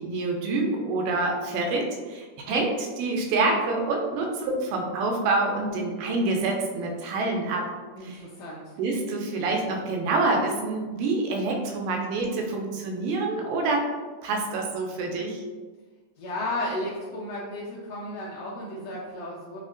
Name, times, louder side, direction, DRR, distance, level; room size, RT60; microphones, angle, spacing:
voice 1, 0.0-7.7 8.0-8.2 8.8-13.9 14.2-15.4, right 3 dB, 85° right, 1 dB, 2.2 m, -27 dB
voice 2, 8.0-8.7 16.2-19.6, left 1 dB, 85° left, -5 dB, 1.7 m, -34 dB
5.2 x 2.1 x 2.5 m, 1.4 s
omnidirectional pair, 3.7 m